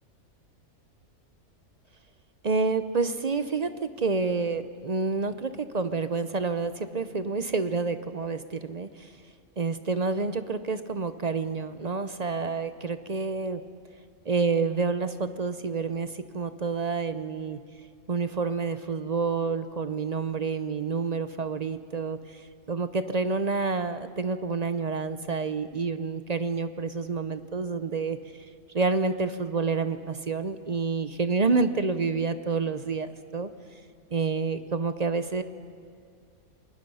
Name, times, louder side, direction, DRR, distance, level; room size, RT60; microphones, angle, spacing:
voice 1, 2.4-9.1 9.6-13.6 14.3-17.6 18.1-28.2 28.7-33.5 34.1-35.4, right 4 dB, 40° right, 11 dB, 0.6 m, -28 dB
28.5 x 20.5 x 5.5 m, 2.4 s
omnidirectional pair, 1.5 m